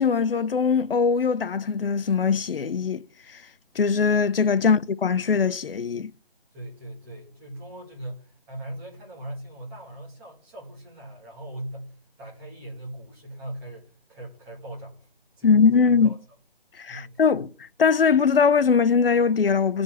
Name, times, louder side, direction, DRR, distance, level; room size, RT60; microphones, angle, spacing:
voice 1, 0.0-3.0 3.8-6.1 15.4-16.1 16.8-17.5 17.8-19.8, left 5 dB, 70° left, 0.7 m, -21 dB
voice 2, 6.5-15.1 15.4-16.2 16.9-17.2, right 1 dB, 5° right, 1.6 m, -39 dB
15.0 x 5.2 x 7.2 m
figure-of-eight pair, 170°, 29 cm